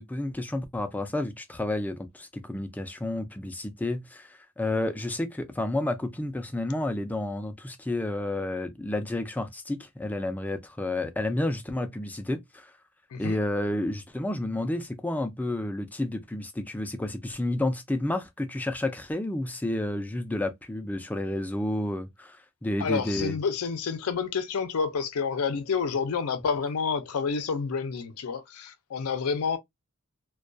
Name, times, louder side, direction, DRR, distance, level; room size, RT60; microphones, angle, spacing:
voice 1, 0.0-12.6 13.2-23.4, left 1 dB, 5° left, 0.3 m, -30 dB
voice 2, 22.8-29.6, left 5 dB, 85° left, 0.5 m, -29 dB
2.2 x 2.2 x 2.4 m
head